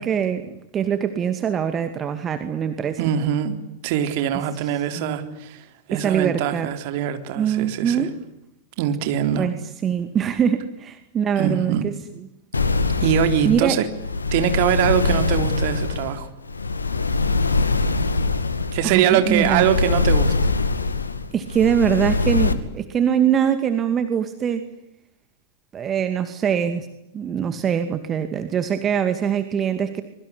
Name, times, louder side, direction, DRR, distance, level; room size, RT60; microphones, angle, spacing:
voice 1, 0.0-3.1 5.0-5.4 5.9-6.7 7.3-8.1 9.4-11.9 13.4-13.8 18.8-19.6 21.3-24.6 25.7-26.9 27.1-30.0, right 8 dB, 25° right, 9 dB, 2.3 m, -23 dB
voice 2, 3.0-3.6 3.8-8.1 8.8-9.5 11.4-11.9 13.0-13.9 14.3-16.3 18.7-20.3, right 9 dB, 45° right, 8 dB, 3.9 m, -23 dB
sound 1, 12.5-22.5, left 3 dB, 75° left, 2.4 m, -23 dB
26.0 x 23.5 x 9.9 m, 0.86 s
figure-of-eight pair, 95°, 0 cm